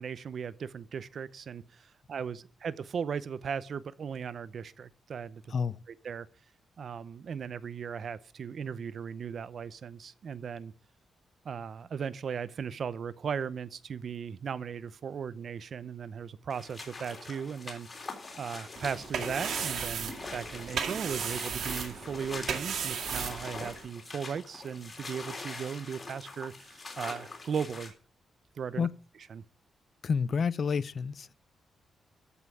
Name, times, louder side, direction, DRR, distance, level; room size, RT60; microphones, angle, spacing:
voice 1, 0.0-5.5 5.9-6.3 6.8-10.7 11.4-17.9 18.4-27.9 28.6-28.9 29.3-29.4, right 7 dB, 50° right, 0.7 m, -37 dB
voice 2, 5.5-5.8 28.8-28.9 30.0-31.3, left 6 dB, 45° left, 0.5 m, -29 dB
sound 1, 16.5-27.9, left 3 dB, 30° left, 3.5 m, -43 dB
sound 2, 18.8-23.9, right 7 dB, 70° right, 2.1 m, -35 dB
14.0 x 5.6 x 8.3 m
wide cardioid pair, 150°, 0 cm